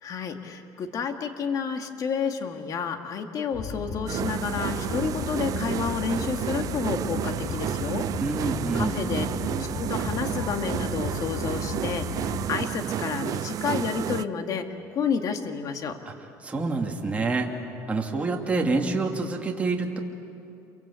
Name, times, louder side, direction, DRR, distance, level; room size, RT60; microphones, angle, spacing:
voice 1, 0.0-8.1 8.7-9.3 9.6-14.7 14.9-16.0, left 6 dB, 50° left, 6 dB, 2.1 m, -30 dB
sound 1, 3.5-12.5, left 5 dB, 80° left, 3.7 m, -35 dB
sound 2, 4.1-14.2, right 11 dB, 50° right, 0.6 m, -31 dB
voice 2, 8.2-9.0 16.1-16.2 16.4-17.6 17.9-20.0, right 3 dB, 15° right, 0 dB, 2.5 m, -27 dB
28.5 x 23.5 x 8.4 m, 2.7 s
cardioid pair, 115°, 8 cm